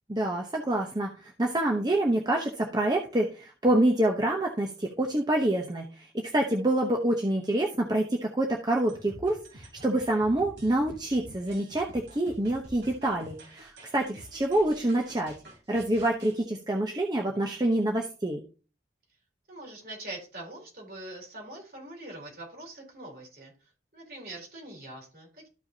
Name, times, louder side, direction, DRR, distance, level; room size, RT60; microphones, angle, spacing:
voice 1, 0.1-15.3 15.7-18.4, right 1 dB, 20° right, 0 dB, 0.9 m, -27 dB
sound 1, 8.9-16.4, equal, 75° right, 3.4 m, -49 dB
voice 2, 19.5-23.5 23.9-25.5, right 1 dB, 55° right, 0 dB, 3.8 m, -43 dB
13.5 x 5.5 x 2.8 m, 0.36 s
head